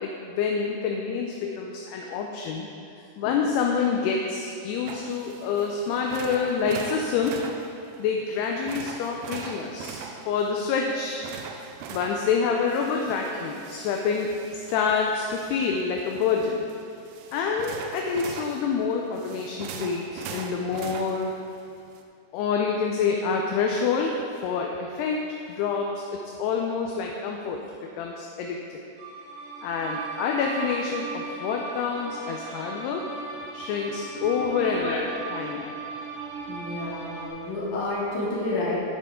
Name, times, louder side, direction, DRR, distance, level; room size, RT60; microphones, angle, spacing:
voice 1, 0.0-2.7 3.2-7.4 8.0-11.2 11.9-16.6 17.3-21.3 22.3-24.2 24.4-25.2 25.5-27.6 28.0-28.6 29.6-33.1 33.5-34.9 35.3-35.7, left 5 dB, 80° left, 1 dB, 2.5 m, -27 dB
sound 1, 4.9-22.0, right 6 dB, 80° right, 2.4 m, -42 dB
sound 2, 29.0-37.3, right 4 dB, 60° right, 2.6 m, -37 dB
voice 2, 34.6-35.2 35.6-35.7 36.5-38.8, left 2 dB, 50° left, -7 dB, 3.4 m, -30 dB
10.5 x 9.5 x 3.7 m, 2.6 s
omnidirectional pair, 5.1 m